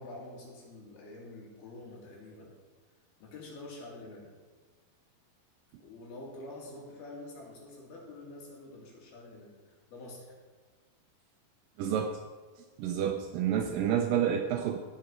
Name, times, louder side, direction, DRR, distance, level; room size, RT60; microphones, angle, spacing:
voice 1, 0.0-2.5 3.2-4.3 5.8-9.5 9.9-10.3, left 2 dB, 80° left, -3 dB, 4.5 m, -47 dB
voice 2, 11.8-12.2 12.8-14.8, right 9 dB, 80° right, 5 dB, 2.0 m, -29 dB
17.0 x 6.7 x 4.5 m, 1.4 s
omnidirectional pair, 4.4 m